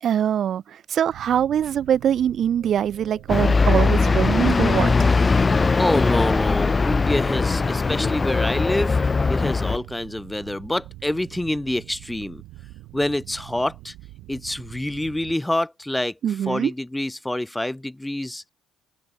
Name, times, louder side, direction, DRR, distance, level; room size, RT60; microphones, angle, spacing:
voice 1, 0.0-5.1 16.2-16.7, right 9 dB, 55° right, 0.5 m, -23 dB
sound 1, 1.1-15.4, right 18 dB, 85° right, 1.4 m, -44 dB
sound 2, 2.5-8.5, left 9 dB, 55° left, 7.1 m, -50 dB
sound 3, 3.3-9.8, left 4 dB, 25° left, 0.8 m, -20 dB
voice 2, 5.8-9.0 9.3-12.4 12.9-13.9 14.3-18.4, left 1 dB, 5° left, 1.2 m, -26 dB
open air
cardioid pair, 100°, 0 cm